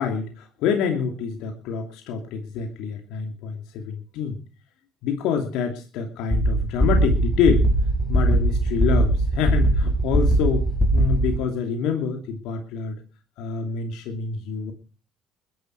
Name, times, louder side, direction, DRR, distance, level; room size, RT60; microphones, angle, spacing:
voice 1, 0.0-4.4 5.0-7.7 8.1-10.6 10.9-13.0 13.4-14.7, left 6 dB, 75° left, 4 dB, 2.8 m, -26 dB
sound 1, 6.3-11.4, right 1 dB, 15° left, 4.4 m, -20 dB
21.0 x 10.5 x 4.7 m, 0.36 s
supercardioid pair, 80°, 0 cm